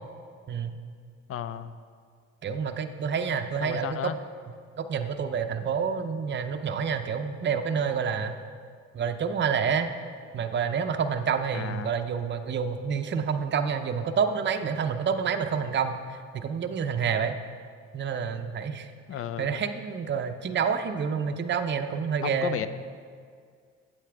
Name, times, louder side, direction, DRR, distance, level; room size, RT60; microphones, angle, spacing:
voice 1, 1.3-1.8 3.6-4.2 11.5-11.9 19.1-19.6 22.2-22.7, left 9 dB, 50° left, 13 dB, 0.5 m, -33 dB
voice 2, 2.4-4.0 4.8-8.3 8.9-9.9 10.3-17.4 17.9-18.9 19.4-22.6, right 6 dB, 40° right, 7 dB, 0.6 m, -28 dB
8.6 x 8.3 x 3.4 m, 2.1 s
cardioid pair, 90°, 30 cm